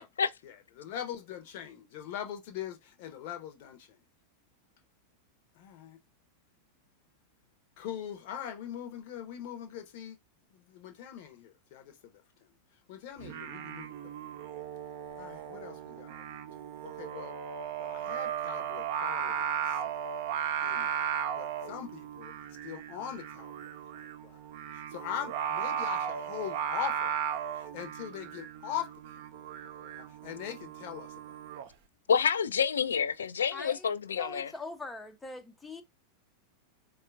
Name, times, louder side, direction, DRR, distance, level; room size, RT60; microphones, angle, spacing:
voice 1, 0.4-4.0 5.6-6.0 7.8-10.2 10.5-12.2 12.9-14.1 15.2-17.4 17.8-20.1 20.6-21.1 21.4-22.3 22.6-24.4 24.7-28.9 29.2-29.5 29.8-31.3, left 9 dB, 50° left, 0.8 m, -42 dB
Singing, 13.2-31.7, right 9 dB, 50° right, 0.6 m, -36 dB
voice 2, 32.1-34.5, left 7 dB, 70° left, 0.4 m, -28 dB
voice 3, 33.5-35.8, left 3 dB, 10° left, 0.5 m, -42 dB
4.2 x 2.4 x 2.4 m
figure-of-eight pair, 90°, 0 cm